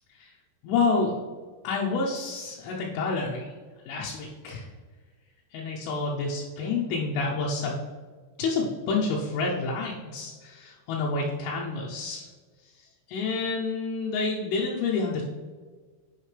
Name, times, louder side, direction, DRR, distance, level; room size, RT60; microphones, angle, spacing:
voice 1, 0.6-1.2 1.6-3.5 3.9-4.6 5.5-7.8 8.4-12.3 13.1-15.2, left 4 dB, 80° left, -3 dB, 3.2 m, -28 dB
9.9 x 4.9 x 3.3 m, 1.4 s
omnidirectional pair, 5.9 m